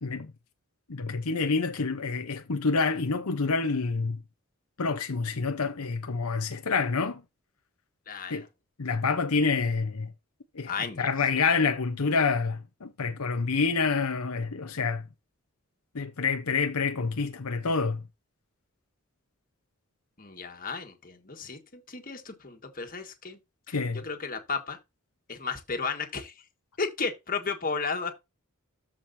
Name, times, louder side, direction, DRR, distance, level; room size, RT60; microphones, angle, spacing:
voice 1, 0.0-0.3 0.9-4.2 4.8-7.2 8.3-8.4 8.8-10.1 10.5-10.7 11.0-15.1 15.9-18.0 23.7-24.0, left 4 dB, 80° left, 0.9 m, -27 dB
voice 2, 8.1-8.5 10.7-11.1 20.2-23.4 23.7-24.8 25.3-26.3 26.8-28.1, left 4 dB, 40° left, 1.7 m, -34 dB
13.5 x 5.1 x 2.7 m
head